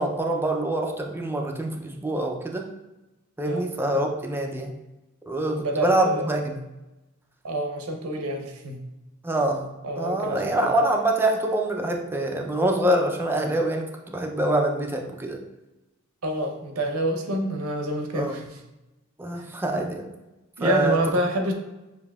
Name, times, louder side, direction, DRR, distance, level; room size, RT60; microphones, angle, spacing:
voice 1, 0.0-2.7 3.4-4.7 5.3-6.6 9.2-9.7 10.0-15.4 18.1-18.4 19.2-20.1 20.6-21.0, right 1 dB, 10° right, 2 dB, 0.4 m, -25 dB
voice 2, 5.5-6.3 7.4-8.8 9.8-10.5 16.2-18.4 20.6-21.5, right 1 dB, 90° right, 3 dB, 0.7 m, -27 dB
6.8 x 2.7 x 2.3 m, 1.0 s
head